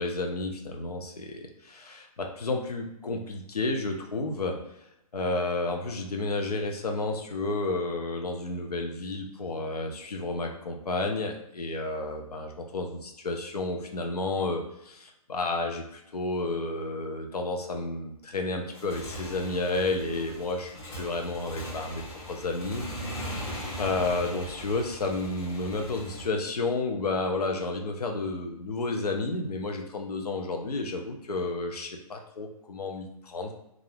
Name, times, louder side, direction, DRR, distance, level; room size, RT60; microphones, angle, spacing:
voice 1, 0.0-4.6 5.1-22.0 22.3-22.8 23.8-33.5, left 3 dB, 80° left, 3 dB, 0.5 m, -31 dB
Motorcycle / Engine, 18.6-26.2, equal, 15° left, 0.7 m, -39 dB
2.4 x 2.4 x 3.3 m, 0.81 s
figure-of-eight pair, 130°, 20 cm